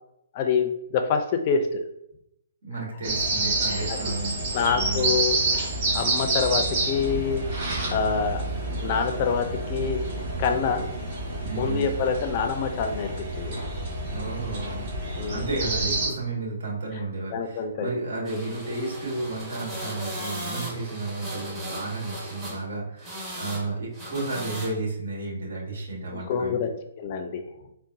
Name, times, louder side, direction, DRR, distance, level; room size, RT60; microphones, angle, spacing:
voice 1, 0.3-1.8 4.5-7.5 7.9-8.4 8.8-10.0 10.4-10.8 11.5-13.6 15.2-15.5 17.3-17.9 26.1-26.7 27.0-27.4, left 6 dB, 40° left, 6 dB, 0.4 m, -26 dB
voice 2, 2.6-5.2 11.4-12.0 14.1-14.9 15.3-26.6, right 2 dB, 70° right, -2 dB, 1.4 m, -32 dB
sound 1, 3.0-16.1, right 2 dB, 40° right, 1.3 m, -28 dB
sound 2, 18.3-22.6 23.0-23.7 23.9-24.7, right 1 dB, 15° right, 1.0 m, -37 dB
3.9 x 2.1 x 2.6 m, 0.79 s
hypercardioid pair, 140°, 0 cm